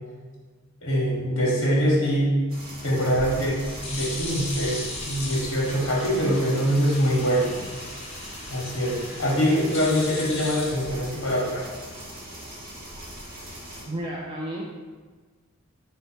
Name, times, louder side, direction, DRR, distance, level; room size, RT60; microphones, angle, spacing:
voice 1, 0.8-2.3 2.8-3.6 3.9-4.8 5.1-7.6 8.5-11.7, equal, 65° left, -4 dB, 0.9 m, -23 dB
sound 1, 2.5-13.8, equal, 45° right, 1.0 m, -41 dB
sound 2, 3.2-11.5, left 2 dB, 30° left, 0.8 m, -38 dB
voice 2, 13.9-14.6, right 1 dB, 25° right, -4 dB, 0.4 m, -32 dB
4.5 x 2.1 x 4.3 m, 1.4 s
head